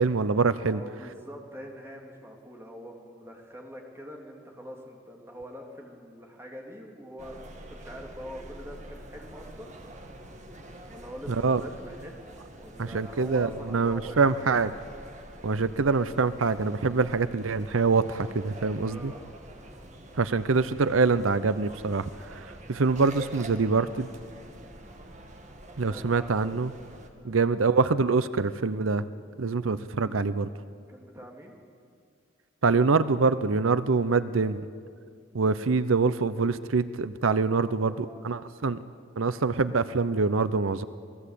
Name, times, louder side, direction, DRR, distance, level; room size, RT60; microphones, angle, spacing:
voice 1, 0.0-0.8 11.3-11.6 12.8-14.7 15.4-19.1 20.2-24.1 25.8-26.7 27.2-29.1 29.4-30.5 32.6-34.7 35.3-38.8 39.2-40.8, right 4 dB, 90° right, 14 dB, 0.7 m, -25 dB
voice 2, 0.6-7.4 7.7-9.7 10.9-12.2 12.5-14.5 18.7-19.2 25.8-26.5 27.2-27.5 30.9-31.6 34.2-34.4 37.5-38.5, equal, 15° right, 0 dB, 3.3 m, -44 dB
sound 1, 7.2-27.1, right 1 dB, 35° right, 2.0 m, -46 dB
28.0 x 19.5 x 8.4 m, 2.1 s
head